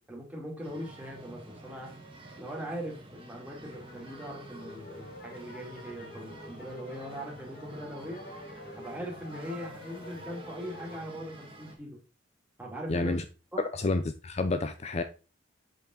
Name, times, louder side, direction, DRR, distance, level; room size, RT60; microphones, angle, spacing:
voice 1, 0.1-1.9 2.4-8.2 8.8-12.0 12.6-13.1 13.5-13.6, equal, 10° right, 2.6 m, -40 dB
sound 1, 0.6-11.7, right 1 dB, 30° right, 1.8 m, -49 dB
sound 2, 3.7-11.1, left 1 dB, 55° left, 2.3 m, -48 dB
voice 2, 12.9-13.2 13.6-15.0, left 3 dB, 35° left, 0.5 m, -29 dB
7.6 x 5.3 x 3.8 m
head